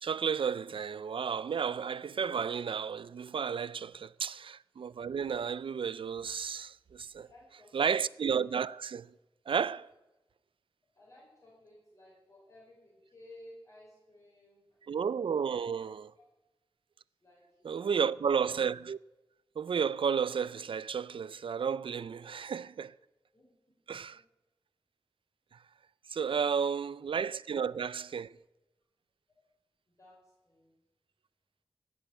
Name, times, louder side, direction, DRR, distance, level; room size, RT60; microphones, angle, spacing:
voice 1, 0.0-7.3 7.7-9.1 9.5-9.9 14.9-16.1 17.6-19.0 19.6-22.9 23.9-24.2 26.1-28.3, right 6 dB, 80° right, 0.4 m, -32 dB
voice 2, 7.2-8.0 10.9-14.8 15.5-16.2 17.2-18.1 23.3-23.5 23.9-24.2 26.5-27.0 29.4-29.5 29.9-30.8, left 1 dB, 35° left, 5.4 m, -58 dB
16.0 x 6.3 x 9.1 m
wide cardioid pair, 100°, 9 cm